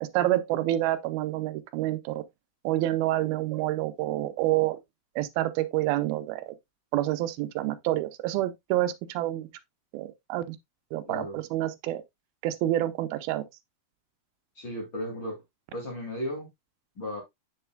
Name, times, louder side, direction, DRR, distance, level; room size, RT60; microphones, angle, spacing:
voice 1, 0.0-2.2 2.6-4.8 5.2-6.6 6.9-9.5 9.9-10.6 10.9-12.0 12.4-13.5, right 15 dB, 85° right, 2.5 m, -28 dB
voice 2, 11.1-11.4 14.6-15.4 15.7-16.5 17.0-17.2, equal, 35° left, 2.5 m, -35 dB
7.3 x 6.7 x 2.2 m
omnidirectional pair, 4.3 m